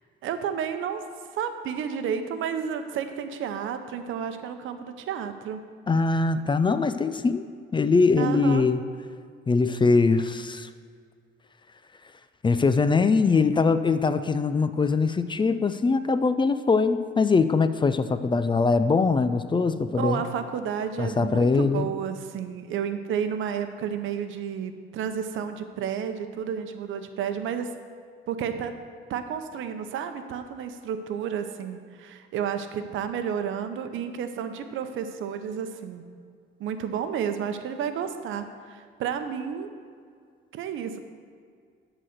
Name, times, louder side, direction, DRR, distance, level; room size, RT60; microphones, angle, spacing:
voice 1, 0.2-1.0 1.4-5.6 8.2-8.6 20.0-27.7 28.3-28.7 29.1-36.0 36.6-39.7 40.5-41.0, right 8 dB, 80° right, 8 dB, 0.7 m, -31 dB
voice 2, 5.9-7.4 7.7-8.8 9.5-10.7 12.4-20.2 21.0-21.9, left 4 dB, 25° left, 11 dB, 0.4 m, -22 dB
12.0 x 4.1 x 6.5 m, 2.1 s
cardioid pair, 90°, 20 cm